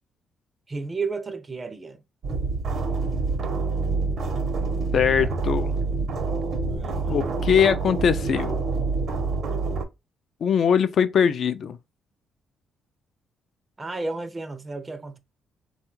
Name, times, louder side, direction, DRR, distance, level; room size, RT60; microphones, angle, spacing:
voice 1, 0.7-2.0 5.2-5.3 6.7-7.4 13.8-15.2, right 3 dB, 25° right, 0.4 m, -33 dB
sound 1, 2.2-9.8, right 4 dB, 65° right, 0.7 m, -27 dB
voice 2, 4.9-5.8 7.1-8.6 10.4-11.8, left 7 dB, 60° left, 0.3 m, -21 dB
3.4 x 2.3 x 3.0 m
cardioid pair, 90°, 0 cm